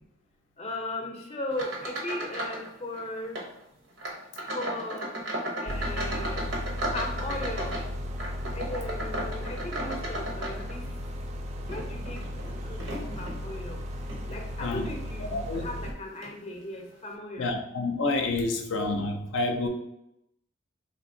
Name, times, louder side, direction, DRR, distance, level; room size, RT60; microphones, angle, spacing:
voice 1, 0.6-3.4 4.5-5.1 5.6-6.4 6.9-7.7 8.5-10.8 11.7-12.2 12.7-13.8 14.3-17.5, left 1 dB, 35° left, 2 dB, 0.5 m, -37 dB
sound 1, 1.5-2.7 2.9-3.5 4.0-11.1 11.6-13.4 14.0-14.3 14.8-14.9 15.8-15.9 16.2-16.4, right 1 dB, 85° right, 0.8 m, -35 dB
sound 2, 5.7-15.9, left 1 dB, 35° right, 0.3 m, -35 dB
voice 2, 14.6-14.9 15.3-15.7 17.4-19.7, left 2 dB, 85° left, 4 dB, 0.5 m, -28 dB
3.7 x 2.7 x 2.6 m, 0.84 s
head